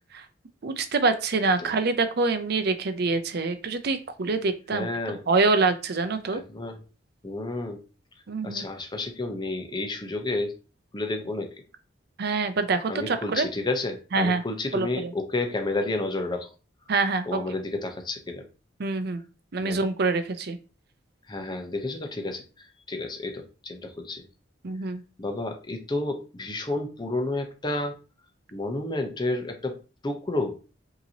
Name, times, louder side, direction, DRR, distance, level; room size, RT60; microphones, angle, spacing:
voice 1, 0.6-6.4 8.3-8.6 12.2-13.5 14.1-14.4 14.7-15.1 16.9-17.4 18.8-19.2 19.5-20.6 24.6-25.0, right 3 dB, 55° right, 9 dB, 0.6 m, -25 dB
voice 2, 4.7-5.2 6.3-6.8 7.2-7.8 8.4-10.5 10.9-11.5 12.9-16.5 17.3-18.5 19.6-19.8 21.3-24.2 25.2-27.9 28.5-29.8 30.0-30.5, left 2 dB, 25° left, 5 dB, 0.8 m, -31 dB
5.4 x 2.9 x 2.8 m, 0.34 s
head